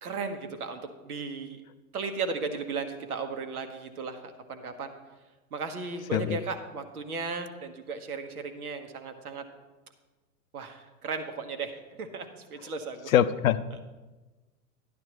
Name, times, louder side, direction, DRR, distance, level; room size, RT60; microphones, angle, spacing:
voice 1, 0.0-1.6 1.9-4.9 5.5-9.4 10.5-13.1, right 4 dB, 70° right, 7 dB, 1.4 m, -36 dB
voice 2, 13.1-13.8, left 10 dB, 60° left, 15 dB, 0.6 m, -24 dB
11.5 x 10.5 x 3.1 m, 1.2 s
figure-of-eight pair, 105°, 46 cm